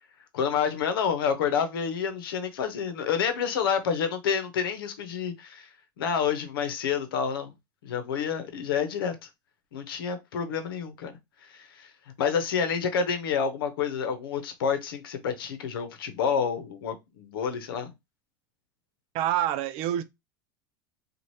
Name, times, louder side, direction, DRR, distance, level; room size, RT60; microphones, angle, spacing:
voice 1, 0.3-5.7 6.0-7.5 7.8-9.2 9.7-11.1 11.5-11.9 12.2-17.9, left 7 dB, 85° left, 0.8 m, -28 dB
voice 2, 19.1-20.0, right 12 dB, 55° right, 0.5 m, -26 dB
3.1 x 2.3 x 2.7 m
supercardioid pair, 110°, 12 cm